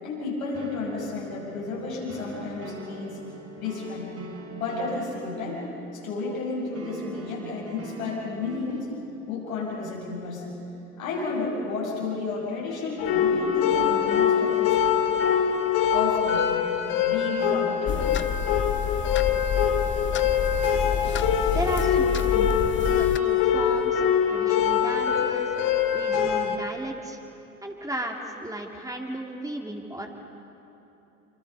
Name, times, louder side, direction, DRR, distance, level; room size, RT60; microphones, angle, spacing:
voice 1, 0.0-3.2 3.6-4.1 4.5-5.6 5.9-8.9 9.2-10.5 11.0-14.8 15.9-16.6 17.0-18.0 21.8-21.9, left 3 dB, 75° left, -4 dB, 6.6 m, -32 dB
sound 1, 0.5-8.8, right 1 dB, 35° right, 3.5 m, -43 dB
sound 2, 13.0-26.6, left 8 dB, 55° left, 2.2 m, -24 dB
sound 3, 17.9-23.2, left 9 dB, 25° left, 0.7 m, -29 dB
voice 2, 21.5-25.5 25.9-27.2 27.6-30.1, right 1 dB, 10° right, 1 dB, 2.5 m, -35 dB
27.5 x 26.0 x 5.6 m, 3.0 s
figure-of-eight pair, 60°, 42 cm